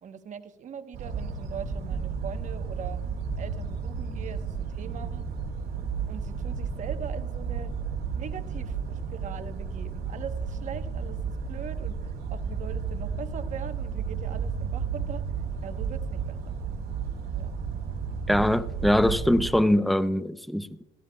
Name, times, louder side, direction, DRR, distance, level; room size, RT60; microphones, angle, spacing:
voice 1, 0.0-3.0 3.4-5.2 6.1-7.7 8.1-12.0 12.3-15.2 15.6-16.6 17.4-17.6, right 7 dB, 45° right, 9 dB, 1.0 m, -41 dB
sound 1, 0.9-19.6, right 6 dB, 70° right, 2.0 m, -33 dB
voice 2, 18.3-20.8, left 1 dB, ahead, 15 dB, 0.4 m, -23 dB
16.5 x 13.5 x 2.2 m, 1.1 s
cardioid pair, 110°, 17 cm